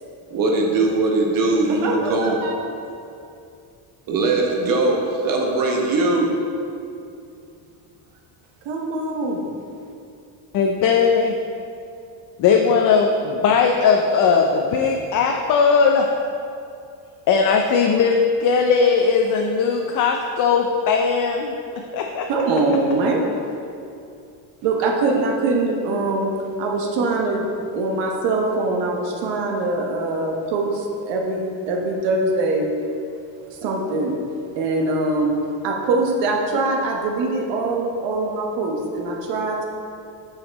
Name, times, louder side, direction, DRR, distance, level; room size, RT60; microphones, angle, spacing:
voice 1, 0.3-2.4 4.1-6.3, right 2 dB, 45° right, 0 dB, 1.2 m, -20 dB
voice 2, 1.7-2.5 8.6-9.5 22.3-23.2 24.6-32.7 33.6-34.2 34.6-35.4 35.6-39.6, right 2 dB, 70° right, 1 dB, 1.0 m, -23 dB
voice 3, 10.5-11.4 12.4-16.1 17.3-21.5 21.9-22.3, left 5 dB, 45° left, 2 dB, 0.5 m, -18 dB
5.8 x 5.7 x 4.0 m, 2.5 s
cardioid pair, 130°, 46 cm